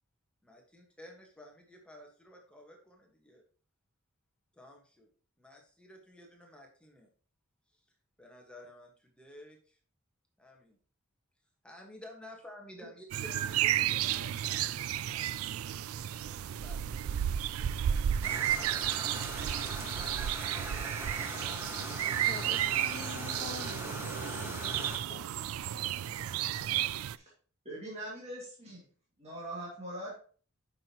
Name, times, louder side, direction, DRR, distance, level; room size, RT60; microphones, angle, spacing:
voice 1, 0.4-3.4 4.5-5.1 5.4-7.1 7.7-7.9 8.2-9.8 10.4-10.8 11.6-17.3 17.6-18.9, left 1 dB, 5° left, 1 dB, 1.5 m, -53 dB
sound 1, 13.1-27.2, right 11 dB, 75° right, 0.3 m, -33 dB
sound 2, 18.2-25.0, equal, 10° right, 1.6 m, -41 dB
voice 2, 22.3-25.3, left 5 dB, 35° left, 7 dB, 0.4 m, -46 dB
voice 3, 27.6-28.9 29.2-30.2, right 1 dB, 30° right, -5 dB, 2.3 m, -42 dB
9.0 x 6.0 x 3.0 m, 0.42 s
head